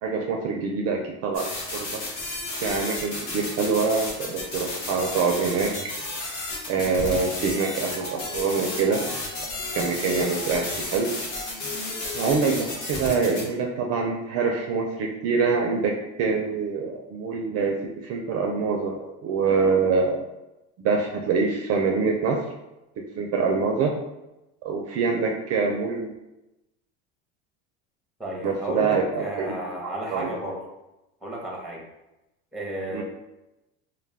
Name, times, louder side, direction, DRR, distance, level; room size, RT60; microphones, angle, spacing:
voice 1, 0.0-2.0 2.6-5.7 6.7-9.0 9.7-11.1 12.1-20.2 20.8-22.4 23.2-23.9 24.6-26.1 28.4-29.5 29.8-30.3 32.9-33.0, right 4 dB, 45° right, 1 dB, 0.4 m, -25 dB
sound 1, 1.3-13.4, left 2 dB, 85° left, 1.0 m, -33 dB
sound 2, 7.0-12.8, left 2 dB, 20° left, 0.3 m, -40 dB
voice 2, 28.2-30.6 31.2-31.8 32.5-33.0, right 1 dB, ahead, -2 dB, 0.7 m, -33 dB
2.2 x 2.2 x 3.3 m, 0.95 s
supercardioid pair, 110°, 34 cm